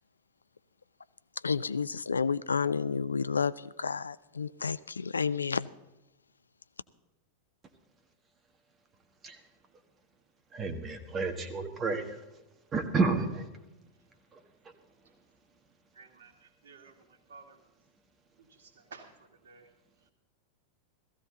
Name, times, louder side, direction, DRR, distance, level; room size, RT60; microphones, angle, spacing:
voice 1, 1.4-5.7, left 5 dB, 75° left, 17 dB, 0.4 m, -30 dB
voice 2, 10.5-12.1 12.7-13.5, right 3 dB, 25° right, 6 dB, 1.6 m, -30 dB
voice 3, 16.0-16.9 17.3-17.6 18.6-19.1 19.4-19.7, right 4 dB, 65° right, 5 dB, 2.0 m, -52 dB
15.5 x 15.0 x 3.9 m, 1.0 s
figure-of-eight pair, 90°, 0 cm